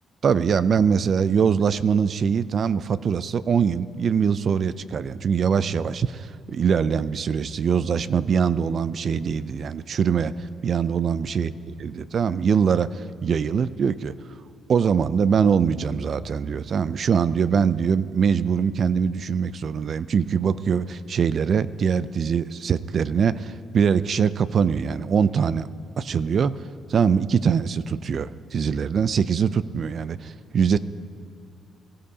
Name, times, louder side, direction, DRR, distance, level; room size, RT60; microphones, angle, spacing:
voice 1, 0.2-11.5 11.8-14.1 14.7-25.7 26.0-26.6 26.9-30.8, right 6 dB, 55° right, 16 dB, 0.4 m, -23 dB
21.0 x 14.5 x 2.8 m, 2.1 s
cardioid pair, 90°, 0 cm